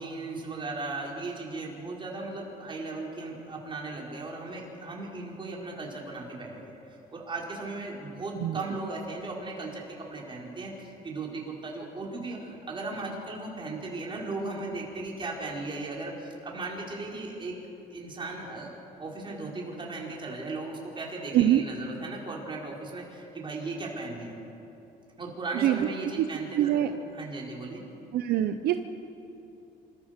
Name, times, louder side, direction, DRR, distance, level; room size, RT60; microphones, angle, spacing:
voice 1, 0.0-6.8 7.1-17.5 17.9-24.3 25.2-26.9 27.1-27.8, right 3 dB, 30° right, -2 dB, 4.8 m, -37 dB
voice 2, 26.6-26.9 28.1-28.8, right 12 dB, 70° right, 8 dB, 0.8 m, -24 dB
27.0 x 14.5 x 6.8 m, 2.9 s
cardioid pair, 110°, 17 cm